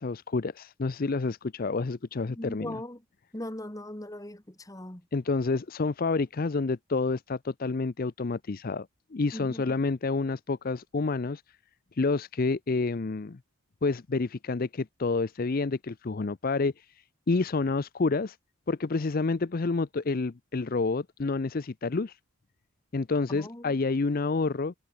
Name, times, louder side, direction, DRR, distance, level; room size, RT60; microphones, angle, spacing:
voice 1, 0.0-2.8 5.1-11.4 11.9-13.4 13.8-18.4 18.7-22.2 22.9-24.7, left 3 dB, 40° left, 0.5 m, -29 dB
voice 2, 2.3-3.0 3.3-5.0 9.3-9.7 23.3-23.7, left 1 dB, 15° left, 1.7 m, -39 dB
head